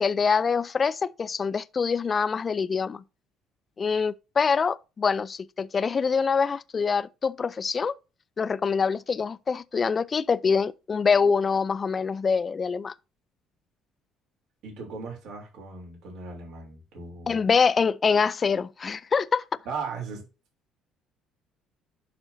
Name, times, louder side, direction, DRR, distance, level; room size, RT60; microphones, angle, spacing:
voice 1, 0.0-3.0 3.8-8.0 8.4-12.9 17.3-19.4, left 5 dB, 40° left, 0.4 m, -25 dB
voice 2, 14.6-17.4 19.6-20.3, right 4 dB, 70° right, 3.0 m, -37 dB
11.5 x 4.1 x 2.7 m
supercardioid pair, 70°, 0 cm